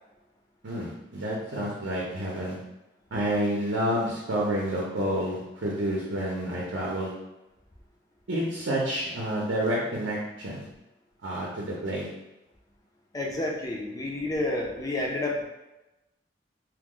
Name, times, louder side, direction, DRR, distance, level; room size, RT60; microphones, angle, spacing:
voice 1, 0.6-2.6 3.1-7.1 8.3-10.6 11.2-12.1, right 1 dB, 75° right, -5 dB, 0.7 m, -29 dB
voice 2, 13.1-15.5, left 2 dB, 20° left, -1 dB, 0.4 m, -30 dB
3.0 x 2.0 x 3.6 m, 0.97 s
head